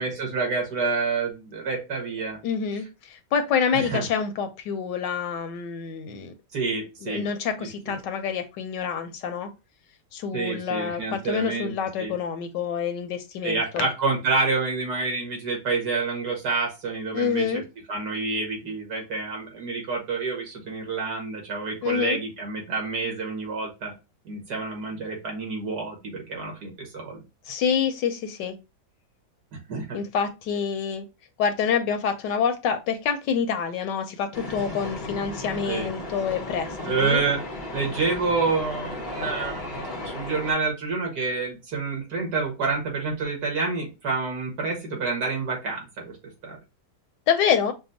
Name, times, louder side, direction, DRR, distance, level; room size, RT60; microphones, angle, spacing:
voice 1, 0.0-2.4 3.7-4.1 6.5-7.3 7.6-8.0 10.3-11.7 12.0-12.1 13.4-17.6 17.9-23.9 24.3-27.2 29.7-30.0 35.7-35.9 36.9-37.4 37.7-46.2 46.4-46.6, right 4 dB, 65° right, 0 dB, 2.1 m, -28 dB
voice 2, 2.4-6.3 7.0-9.5 10.1-13.9 17.1-17.6 21.8-22.2 27.5-28.5 29.9-31.1 31.4-37.2 47.3-47.7, left 7 dB, 80° left, 8 dB, 1.3 m, -27 dB
sound 1, 34.3-40.5, left 1 dB, 50° left, 0.6 m, -35 dB
6.0 x 2.2 x 2.7 m, 0.27 s
omnidirectional pair, 1.9 m